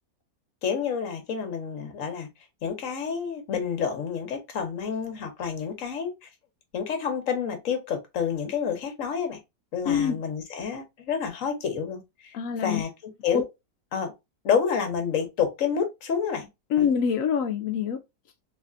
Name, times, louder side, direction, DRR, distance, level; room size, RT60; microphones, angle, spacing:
voice 1, 0.6-2.3 2.6-6.3 6.7-9.4 9.7-13.5 13.9-14.1 14.4-16.5 16.8-16.9, left 7 dB, 55° left, 1.2 m, -29 dB
voice 2, 9.8-10.2 12.3-12.8 13.3-13.4 16.7-18.0, left 7 dB, 70° left, 0.8 m, -25 dB
3.4 x 3.3 x 2.4 m
omnidirectional pair, 1.9 m